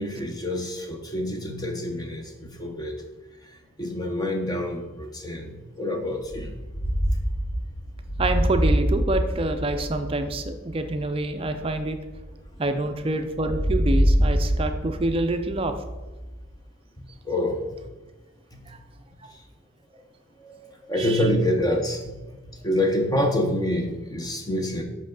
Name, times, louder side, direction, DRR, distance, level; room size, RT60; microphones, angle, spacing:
voice 1, 0.0-3.0 3.4-3.5 3.8-6.6 17.2-17.6 20.4-22.2 22.6-24.8, left 1 dB, 20° left, 3 dB, 0.8 m, -27 dB
sound 1, 6.2-12.9 13.3-16.5, equal, 65° left, 1.7 m, -26 dB
voice 2, 8.2-12.0 12.6-15.7 18.7-18.8 19.2-19.3 21.0-21.3, right 2 dB, 25° right, 7 dB, 0.4 m, -27 dB
7.5 x 5.4 x 3.9 m, 1.2 s
head